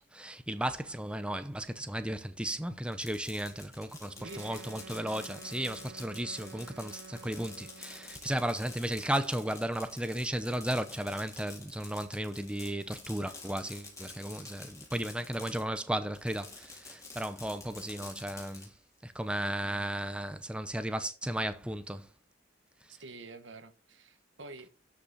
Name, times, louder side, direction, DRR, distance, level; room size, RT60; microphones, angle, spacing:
voice 1, 0.0-18.7 19.0-22.1, right 1 dB, 5° right, 0.7 m, -35 dB
Fireworks, 2.8-15.8 16.1-18.7, left 3 dB, 15° left, 3.8 m, -49 dB
Wind instrument woodwind instrument, 4.2-8.3, right 4 dB, 60° right, 0.7 m, -50 dB
voice 2, 4.2-4.7 22.9-24.7, right 3 dB, 75° right, 1.3 m, -48 dB
13.0 x 5.9 x 4.2 m
head